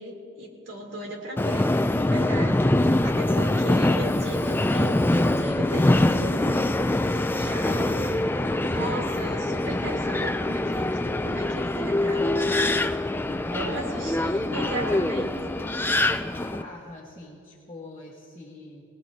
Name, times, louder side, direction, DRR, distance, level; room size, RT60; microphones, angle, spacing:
voice 1, 0.0-6.8 7.0-12.9 13.3-15.6, right 1 dB, 75° right, -2 dB, 3.1 m, -36 dB
Subway metro underground, 1.4-16.6, left 1 dB, 10° left, 0.3 m, -24 dB
voice 2, 7.6-8.7 13.4-18.8, left 2 dB, 30° left, -4 dB, 1.5 m, -42 dB
24.5 x 18.5 x 2.8 m, 2.5 s
head